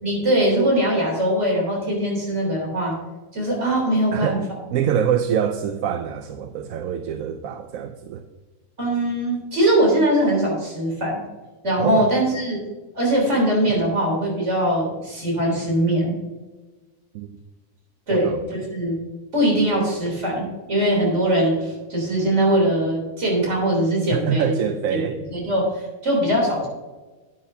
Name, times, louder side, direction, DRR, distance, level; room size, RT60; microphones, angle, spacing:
voice 1, 0.0-3.0 3.3-4.4 8.8-11.2 11.6-12.6 12.9-16.2 18.1-19.0 19.3-24.5 24.9-25.0 25.3-26.7, right 1 dB, 55° right, -2 dB, 3.8 m, -21 dB
voice 2, 4.7-8.2 11.8-12.1 17.1-17.3 18.1-18.4 20.0-20.1 24.1-25.2, right 8 dB, 80° right, 8 dB, 1.0 m, -25 dB
11.0 x 10.0 x 2.8 m, 1.2 s
omnidirectional pair, 1.5 m